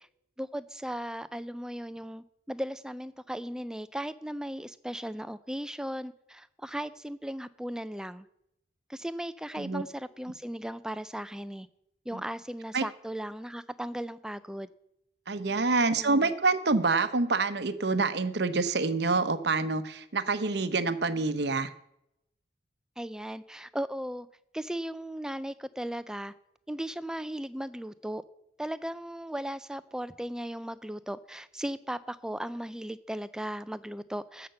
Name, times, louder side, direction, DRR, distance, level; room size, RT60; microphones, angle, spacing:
voice 1, 0.4-8.3 8.9-11.7 12.1-14.7 15.8-16.3 23.0-24.3 24.5-26.3 26.7-28.2 28.6-34.5, equal, 5° right, 14 dB, 0.4 m, -37 dB
voice 2, 15.3-21.7, right 3 dB, 60° right, 12 dB, 0.8 m, -27 dB
13.5 x 5.8 x 7.7 m, 0.79 s
head